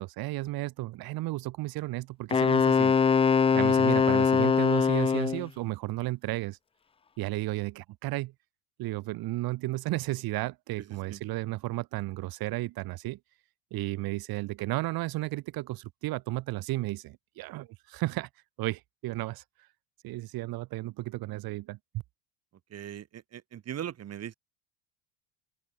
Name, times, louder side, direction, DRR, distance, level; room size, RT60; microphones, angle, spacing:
voice 1, 0.0-3.0 3.5-6.6 7.2-8.3 8.8-13.2 13.7-18.3 18.6-19.4 20.0-22.0, right 18 dB, 60° right, 2.2 m, -33 dB
Wind instrument woodwind instrument, 2.3-5.5, left 6 dB, 15° left, 0.4 m, -22 dB
voice 2, 10.9-11.2 22.7-24.3, right 10 dB, 35° right, 1.6 m, -40 dB
open air
supercardioid pair, 90°, 41 cm